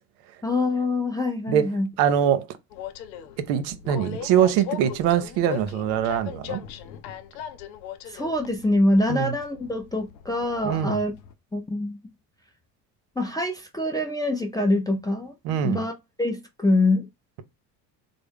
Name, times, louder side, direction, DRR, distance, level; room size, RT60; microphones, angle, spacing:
voice 1, 0.4-1.9 8.1-11.1 11.5-12.0 13.2-15.3 15.6-17.1, left 2 dB, 10° left, 0.4 m, -24 dB
voice 2, 2.0-2.5 3.4-6.6 9.1-9.3 10.6-11.0 15.4-15.8, right 9 dB, 65° right, 0.7 m, -23 dB
Train, 2.7-11.3, left 9 dB, 85° left, 0.6 m, -39 dB
3.4 x 2.0 x 3.4 m
hypercardioid pair, 65°, 50 cm